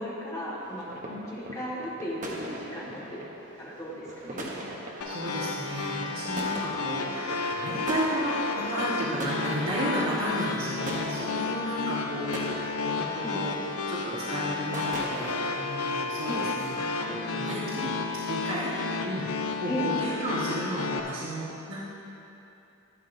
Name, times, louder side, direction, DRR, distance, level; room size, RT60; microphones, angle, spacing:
voice 1, 0.0-3.2 3.6-4.5 13.2-13.4 16.2-16.5 19.7-19.9, equal, 15° left, -8 dB, 1.7 m, -36 dB
sound 1, 0.6-15.7, right 1 dB, 35° right, 1.0 m, -40 dB
sound 2, 5.0-21.0, left 4 dB, 85° left, 0.6 m, -32 dB
voice 2, 5.0-13.6 13.9-18.7 19.0-21.8, equal, 60° right, -11 dB, 1.6 m, -33 dB
11.5 x 9.6 x 2.7 m, 2.8 s
head